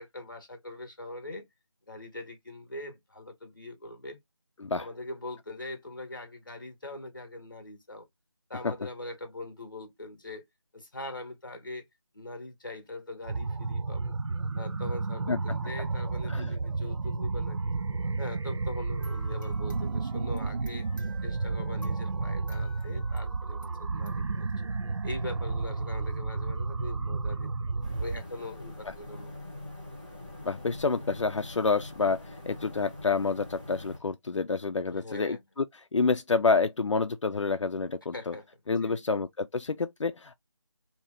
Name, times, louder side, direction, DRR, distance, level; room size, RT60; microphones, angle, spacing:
voice 1, 0.0-1.5 1.9-4.2 4.7-8.1 8.5-10.5 10.7-11.8 12.1-14.0 14.5-17.7 18.2-20.9 21.2-24.5 25.0-27.5 28.0-29.4 34.9-35.4 38.1-38.5 38.8-39.0, left 2 dB, 45° left, 1.0 m, -42 dB
sound 1, 13.2-28.2, right 3 dB, 70° right, 0.4 m, -32 dB
sound 2, 19.0-25.5, right 1 dB, 40° right, 1.6 m, -53 dB
sound 3, 27.8-34.0, left 1 dB, 20° right, 0.7 m, -44 dB
voice 2, 30.4-35.6 35.9-38.3 38.7-40.4, left 4 dB, 80° left, 0.5 m, -28 dB
2.8 x 2.6 x 3.4 m
figure-of-eight pair, 180°, 16 cm